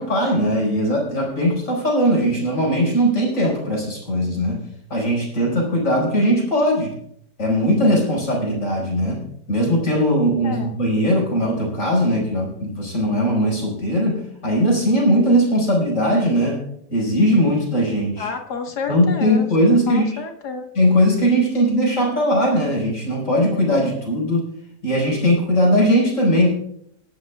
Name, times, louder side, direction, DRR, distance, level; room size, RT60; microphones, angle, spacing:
voice 1, 0.0-4.6 4.9-6.9 7.4-9.2 9.5-16.6 16.9-18.3 18.9-20.2 20.7-24.5 24.8-26.5, equal, 50° left, -1 dB, 5.6 m, -19 dB
voice 2, 10.4-10.8 18.2-19.5 19.9-20.7, left 5 dB, 75° left, 5 dB, 2.0 m, -29 dB
26.0 x 12.0 x 2.4 m, 0.72 s
omnidirectional pair, 1.8 m